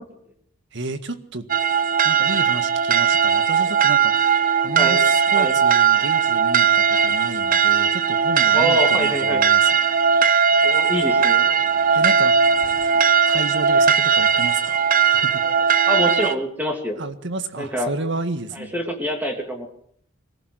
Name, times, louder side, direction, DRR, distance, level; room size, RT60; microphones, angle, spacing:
voice 1, 0.7-1.5 2.0-9.8 11.9-12.3 13.2-15.4 17.0-18.8, right 2 dB, 60° right, 10 dB, 1.8 m, -31 dB
sound 1, 1.5-16.3, right 6 dB, 45° right, 1.1 m, -18 dB
voice 2, 8.5-9.4 10.6-11.5 15.9-17.0 17.6-17.9 18.6-19.7, equal, 10° right, 3 dB, 3.0 m, -26 dB
22.0 x 15.0 x 8.0 m, 0.64 s
head